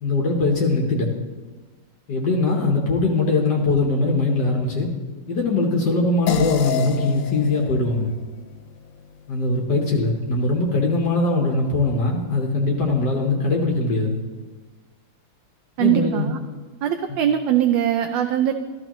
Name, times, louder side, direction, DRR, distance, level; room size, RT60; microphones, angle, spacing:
voice 1, 0.0-1.1 2.1-4.9 5.3-8.1 9.3-14.2 15.8-16.3 17.1-17.2, left 3 dB, 60° left, 0 dB, 1.7 m, -21 dB
sound 1, 6.3-11.0, left 9 dB, 75° left, 1.4 m, -31 dB
voice 2, 15.8-16.4 16.8-18.5, right 11 dB, 75° right, 5 dB, 1.3 m, -21 dB
14.0 x 12.5 x 3.0 m, 1.3 s
omnidirectional pair, 2.1 m